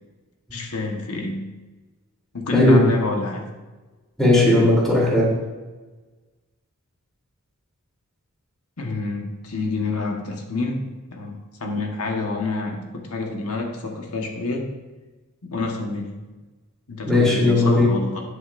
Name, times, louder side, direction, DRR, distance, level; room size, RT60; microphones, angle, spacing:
voice 1, 0.5-1.5 2.3-3.5 8.8-14.7 15.4-16.2 16.9-18.2, left 3 dB, 85° left, 1 dB, 1.4 m, -28 dB
voice 2, 2.5-2.8 4.2-5.3 17.0-17.9, left 1 dB, ahead, -6 dB, 3.3 m, -17 dB
19.0 x 6.7 x 2.6 m, 1.2 s
head